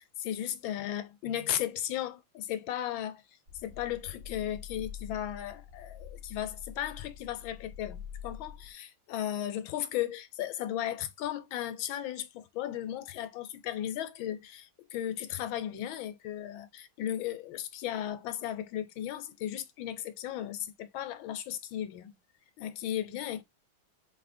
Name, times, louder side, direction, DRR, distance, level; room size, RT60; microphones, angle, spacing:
voice 1, 0.0-3.2 3.6-22.1 22.6-23.4, left 11 dB, 75° left, 1.4 m, -36 dB
sound 1, 3.5-8.7, left 8 dB, 55° right, 2.0 m, -46 dB
4.2 x 2.8 x 4.2 m
omnidirectional pair, 2.3 m